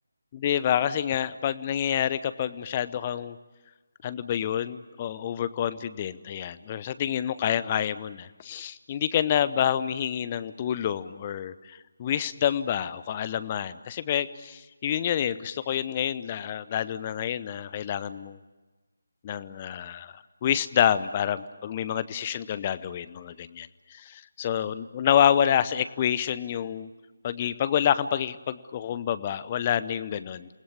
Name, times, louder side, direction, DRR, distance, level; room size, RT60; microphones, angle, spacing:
voice 1, 0.3-3.4 4.0-18.4 19.2-26.9 27.2-30.5, left 10 dB, 25° left, 15 dB, 0.8 m, -28 dB
28.5 x 20.5 x 8.4 m, 1.2 s
figure-of-eight pair, 155°, 0 cm